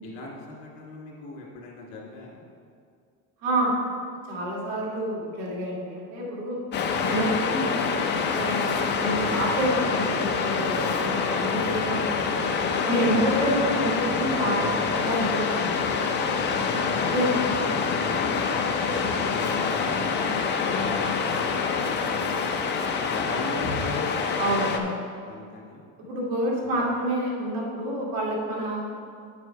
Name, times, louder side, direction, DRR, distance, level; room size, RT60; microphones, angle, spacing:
voice 1, 0.0-2.5 18.0-19.1 19.6-24.2 25.3-25.8 26.5-26.7, left 2 dB, 85° left, -2 dB, 2.4 m, -41 dB
voice 2, 3.4-3.7 4.3-6.6 7.1-7.7 8.3-12.3 12.8-15.8 17.1-17.3 20.7-20.9 24.4-25.0 26.1-28.9, right 1 dB, 80° right, -4 dB, 2.3 m, -28 dB
Waves surf, 6.7-24.8, left 5 dB, 30° left, 0.5 m, -26 dB
9.1 x 6.0 x 4.6 m, 2.3 s
cardioid pair, 170°, 37 cm